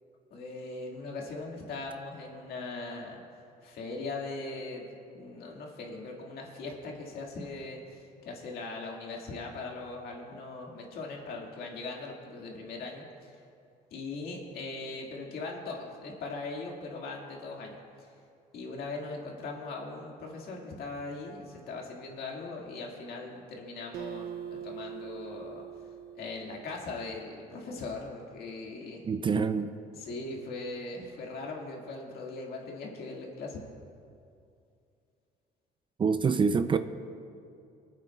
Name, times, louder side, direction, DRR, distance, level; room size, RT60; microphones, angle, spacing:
voice 1, 0.3-3.2 3.6-4.8 5.1-13.4 13.9-18.1 18.5-25.6 26.2-29.0 29.9-33.6, left 3 dB, 65° left, -1 dB, 2.0 m, -40 dB
Acoustic guitar, 23.9-27.4, right 9 dB, 70° right, 0.7 m, -43 dB
voice 2, 29.1-29.7 36.0-36.8, right 5 dB, 30° right, 10 dB, 0.4 m, -26 dB
25.0 x 8.9 x 2.3 m, 2.5 s
cardioid pair, 110°, 17 cm